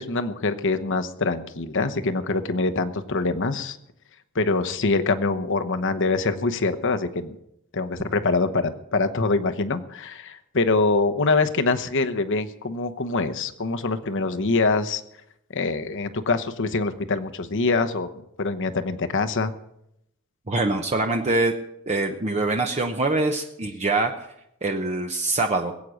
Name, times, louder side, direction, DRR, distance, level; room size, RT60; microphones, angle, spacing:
voice 1, 0.0-3.8 4.3-7.3 7.7-15.0 15.5-18.1 18.4-19.5, left 3 dB, 60° left, 8 dB, 1.0 m, -24 dB
voice 2, 20.5-21.5 21.9-24.1 24.6-25.7, right 2 dB, 30° right, 3 dB, 0.9 m, -24 dB
21.0 x 8.5 x 6.4 m, 0.80 s
head